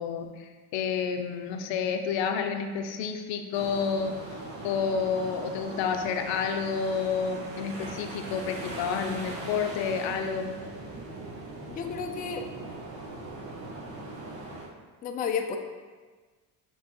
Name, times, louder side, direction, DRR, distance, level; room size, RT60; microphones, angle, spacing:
voice 1, 0.0-4.2 4.6-10.6, left 6 dB, 60° left, 6 dB, 0.6 m, -30 dB
sound 1, 3.5-14.7, right 2 dB, 60° right, 1.2 m, -40 dB
voice 2, 11.7-12.5 15.0-15.6, left 6 dB, 20° left, 4 dB, 0.4 m, -31 dB
6.1 x 3.0 x 2.9 m, 1.4 s
hypercardioid pair, 60°, 50 cm